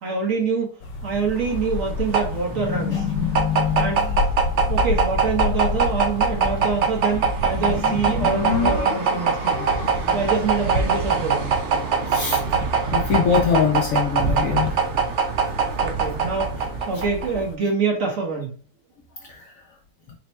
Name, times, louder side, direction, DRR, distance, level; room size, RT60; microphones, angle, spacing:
voice 1, 0.0-0.7 1.0-3.0 3.8-4.0 4.7-9.7 10.1-11.5 15.8-16.5 16.9-18.5, right 5 dB, 50° right, 0 dB, 1.3 m, -25 dB
sound 1, 0.8-17.6, left 4 dB, 75° left, 1.4 m, -29 dB
sound 2, 1.4-17.4, right 5 dB, 75° right, 0.6 m, -23 dB
voice 2, 12.1-12.4 12.8-14.7, left 7 dB, 60° left, 0 dB, 0.9 m, -22 dB
4.2 x 2.2 x 4.3 m, 0.40 s
omnidirectional pair, 1.9 m